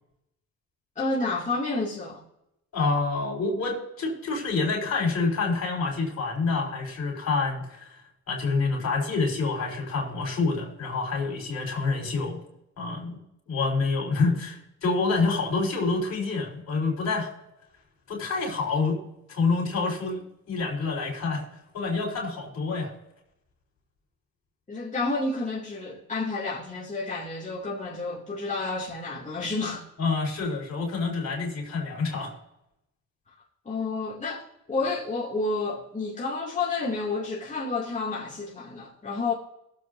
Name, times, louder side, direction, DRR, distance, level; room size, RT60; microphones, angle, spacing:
voice 1, 1.0-2.2 24.7-29.8 33.6-34.4 34.7-39.3, left 3 dB, 25° left, 2.5 m, -30 dB
voice 2, 2.7-7.9 8.3-12.4 12.8-13.2 13.5-17.3 18.1-19.0 19.3-21.5 21.7-22.9 30.0-32.3, left 4 dB, 60° left, 4.2 m, -27 dB
22.5 x 7.7 x 2.7 m
cardioid pair, 90°, 30 cm